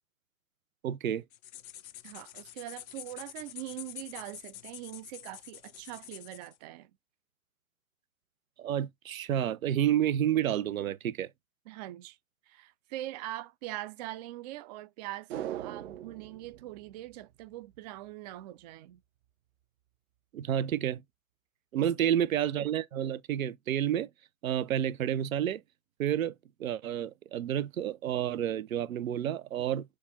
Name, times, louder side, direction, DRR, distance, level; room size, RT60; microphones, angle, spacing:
voice 1, 0.8-1.2 8.6-11.3 20.3-21.0 21.7-24.1 24.4-25.6 26.0-26.3 26.6-29.8, right 10 dB, 80° right, 0.8 m, -30 dB
sound 1, 1.3-6.6, left 12 dB, 90° left, 0.6 m, -47 dB
voice 2, 2.0-6.9 11.7-12.2 12.5-19.0 21.8-22.1, right 15 dB, 35° right, 0.4 m, -42 dB
sound 2, 15.3-17.8 18.1-18.2, right 11 dB, 50° right, 1.1 m, -41 dB
6.7 x 2.4 x 2.8 m
hypercardioid pair, 125°, 41 cm